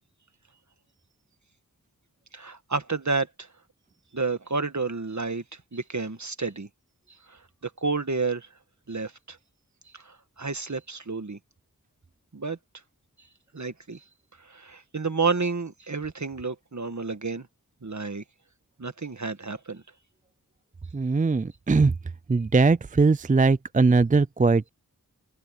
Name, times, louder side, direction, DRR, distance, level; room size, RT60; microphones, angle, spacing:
voice 1, 2.3-3.5 4.1-5.4 5.7-6.7 7.6-8.5 8.9-9.4 9.9-11.4 12.3-12.6 13.5-14.0 14.5-17.5 17.8-18.2 18.8-19.8, right 4 dB, 55° right, 1.7 m, -30 dB
voice 2, 20.9-21.9 22.3-24.7, right 4 dB, 25° right, 0.4 m, -20 dB
wide cardioid pair, 55°, 33 cm